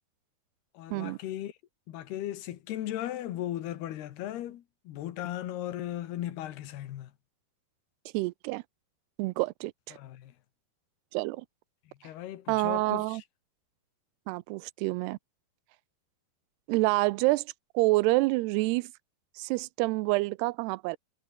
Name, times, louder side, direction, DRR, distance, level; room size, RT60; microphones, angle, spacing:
voice 1, 0.8-1.5 1.9-7.1 9.9-10.3 12.0-13.2, left 13 dB, 75° left, 3.5 m, -37 dB
voice 2, 8.1-8.6 9.2-10.0 11.1-11.5 12.5-13.2 14.3-15.2 16.7-18.9 19.4-21.0, right 22 dB, 85° right, 2.6 m, -28 dB
omnidirectional pair, 4.7 m